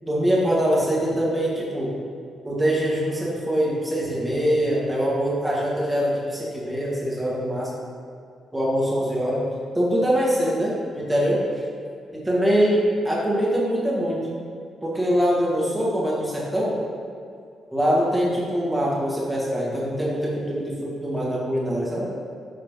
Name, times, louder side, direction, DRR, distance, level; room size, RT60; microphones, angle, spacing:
voice 1, 0.0-1.9 2.4-7.7 8.5-9.5 9.7-11.4 12.2-14.3 14.8-16.8 17.7-22.1, equal, 5° right, -6 dB, 2.0 m, -23 dB
11.5 x 6.6 x 3.9 m, 2.4 s
cardioid pair, 175°, 0 cm